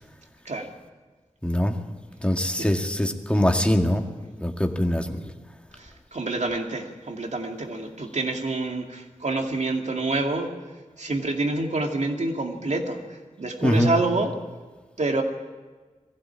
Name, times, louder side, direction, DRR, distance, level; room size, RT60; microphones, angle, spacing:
voice 1, 1.4-1.8 2.2-4.0 4.4-5.2 13.6-14.0, equal, 10° left, 3 dB, 2.0 m, -22 dB
voice 2, 5.7-10.5 11.0-13.0 13.4-14.3 15.0-15.2, right 2 dB, 70° right, 3 dB, 2.4 m, -27 dB
21.0 x 15.5 x 8.7 m, 1.3 s
wide cardioid pair, 70°, 12 cm